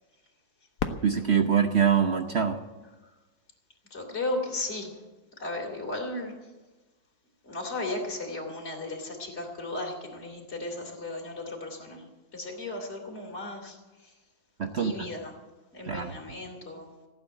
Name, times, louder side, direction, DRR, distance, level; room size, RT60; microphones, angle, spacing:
Fireworks, 0.8-3.5 4.2-4.3 5.0-5.5 7.4-7.5, left 5 dB, 55° left, 1.3 m, -39 dB
voice 1, 1.0-2.6 14.6-15.1 15.9-16.1, right 7 dB, 50° right, 6 dB, 0.9 m, -24 dB
voice 2, 3.9-4.9 5.4-6.3 7.4-12.0 12.3-13.8 14.8-15.4 15.7-16.9, left 2 dB, 35° left, 0 dB, 3.4 m, -35 dB
16.0 x 8.7 x 9.1 m, 1.2 s
omnidirectional pair, 2.0 m